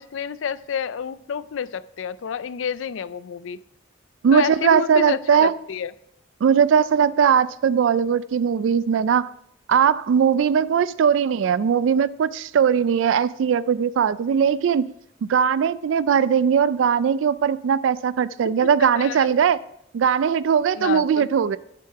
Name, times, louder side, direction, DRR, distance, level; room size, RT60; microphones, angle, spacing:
voice 1, 0.0-3.6 4.3-5.9 18.8-19.3 20.8-21.3, left 7 dB, 85° left, 0.4 m, -29 dB
voice 2, 4.2-5.6 6.4-9.3 9.7-14.8 15.3-19.6 19.9-21.6, right 7 dB, 80° right, 0.3 m, -19 dB
10.5 x 7.6 x 4.7 m
head